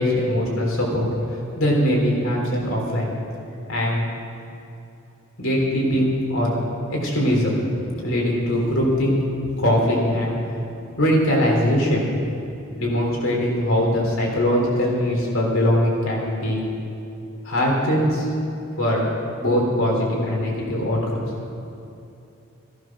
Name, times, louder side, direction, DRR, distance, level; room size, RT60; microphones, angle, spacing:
voice 1, 0.0-3.1 3.7-4.1 5.4-6.5 6.9-7.6 8.0-9.2 9.6-10.3 11.0-12.0 12.8-16.6 17.4-18.3 18.8-19.1 19.4-21.2, equal, 80° left, -2 dB, 3.6 m, -21 dB
15.5 x 11.0 x 6.0 m, 2.8 s
head